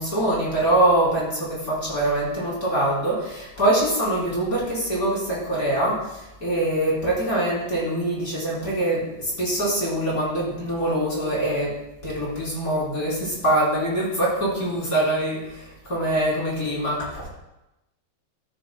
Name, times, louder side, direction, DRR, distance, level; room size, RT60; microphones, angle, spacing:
voice 1, 0.0-11.7 12.0-15.6 15.8-17.3, right 1 dB, 20° left, -6 dB, 3.3 m, -24 dB
13.5 x 10.0 x 2.2 m, 0.92 s
omnidirectional pair, 5.0 m